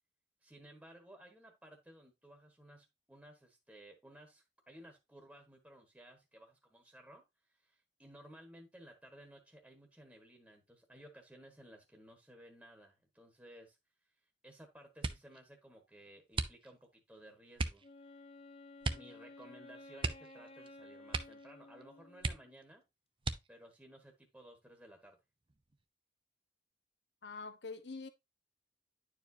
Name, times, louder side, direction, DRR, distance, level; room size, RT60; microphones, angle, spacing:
voice 1, 0.4-13.8 14.4-17.8 18.9-22.8 23.5-25.2, right 1 dB, 5° right, 1.3 m, -57 dB
sound 1, 15.0-15.4 16.3-17.0 17.5-17.9 18.8-19.2 19.4-19.5 20.0-20.7 21.1-21.5 21.8-21.9 22.2-22.7 23.2-23.7 24.5-25.1 25.5-25.8, right 3 dB, 30° right, 0.6 m, -38 dB
Wind instrument woodwind instrument, 17.8-22.6, left 2 dB, 35° left, 0.9 m, -55 dB
voice 2, 27.2-28.1, left 4 dB, 70° left, 0.9 m, -45 dB
10.5 x 4.8 x 2.7 m
head